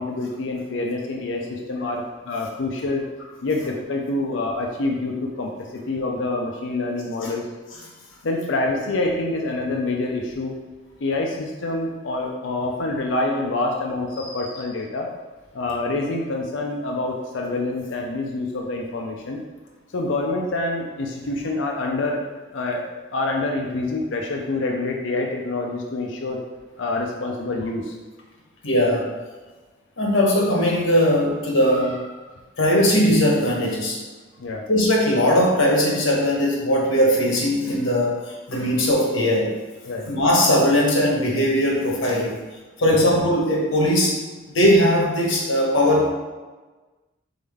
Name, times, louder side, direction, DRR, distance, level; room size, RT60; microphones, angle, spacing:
voice 1, 0.0-3.1 3.4-7.5 8.2-10.5 11.0-15.1 15.5-19.4 19.9-22.2 22.5-22.8 23.1-26.4 26.8-27.9 34.4-34.6 39.9-40.1 42.8-43.0, left 2 dB, 70° left, 1 dB, 0.5 m, -26 dB
voice 2, 28.6-29.1 30.0-32.1 32.6-34.0 34.7-39.5 40.0-42.4 42.8-44.2 44.5-46.1, equal, 85° left, -2 dB, 1.2 m, -19 dB
4.2 x 3.6 x 3.5 m, 1.3 s
head